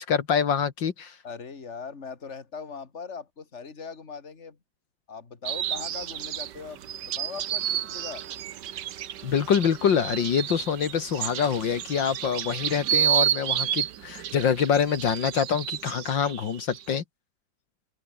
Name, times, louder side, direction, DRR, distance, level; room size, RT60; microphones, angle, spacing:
voice 1, 0.0-1.2 9.2-17.0, left 7 dB, 70° left, 2.3 m, -25 dB
voice 2, 1.2-4.6 5.1-8.2, left 5 dB, 35° left, 2.6 m, -40 dB
sound 1, 5.4-17.0, right 11 dB, 65° right, 1.5 m, -31 dB
open air
omnidirectional pair, 2.1 m